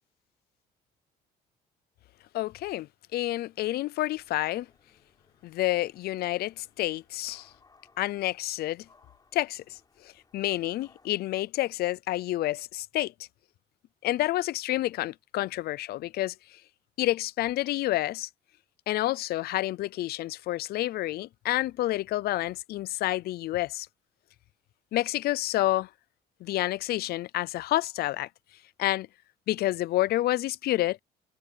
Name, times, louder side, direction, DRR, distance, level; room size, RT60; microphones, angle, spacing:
voice 1, 2.3-4.7 5.4-7.5 8.0-8.9 9.3-13.1 14.0-16.3 17.0-18.3 18.9-23.9 24.9-25.9 26.4-28.3 28.8-29.1 29.5-31.0, left 15 dB, 70° left, 0.6 m, -29 dB
sound 1, 4.1-11.1, left 4 dB, 25° left, 6.2 m, -64 dB
cardioid pair, 110°, 17 cm